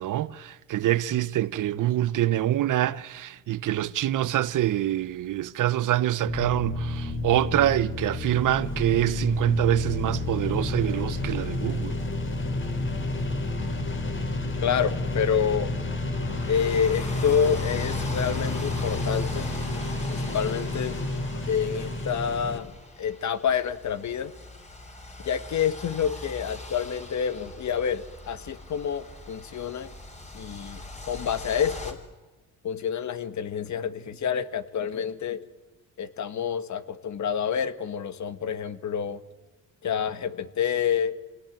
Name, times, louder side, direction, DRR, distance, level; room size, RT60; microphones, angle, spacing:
voice 1, 0.0-12.0, right 13 dB, 75° right, 0.9 m, -25 dB
sound 1, 6.2-22.6, left 2 dB, 35° left, 3.3 m, -30 dB
voice 2, 14.6-15.7 16.4-19.5 20.1-21.0 21.5-22.7 23.0-24.3 25.2-29.9 30.3-32.0 32.6-35.4 36.0-39.2 39.8-41.1, left 7 dB, 60° left, 1.5 m, -28 dB
sound 2, 16.1-31.9, left 2 dB, 20° left, 3.7 m, -42 dB
25.5 x 18.0 x 9.1 m
cardioid pair, 90°, 32 cm